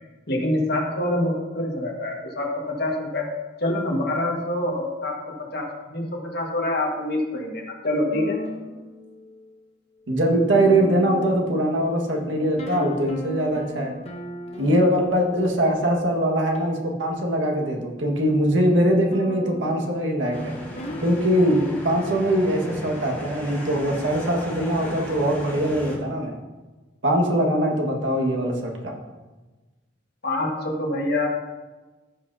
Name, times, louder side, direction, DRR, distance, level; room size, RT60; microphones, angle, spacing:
voice 1, 0.3-3.3 3.6-5.2 5.5-6.0 6.3-8.4 30.2-31.3, left 1 dB, 60° left, 0 dB, 1.6 m, -25 dB
sound 1, 8.1-9.4 10.1-10.2 10.5-16.0 16.5-16.6 18.7-22.2, equal, 35° left, 0.9 m, -38 dB
voice 2, 10.1-13.9 14.6-20.5 21.0-26.4 27.0-29.0, right 1 dB, 90° right, 0 dB, 1.6 m, -22 dB
sound 2, 20.3-26.0, left 1 dB, 10° left, 1.9 m, -36 dB
15.0 x 5.8 x 2.7 m, 1.2 s
head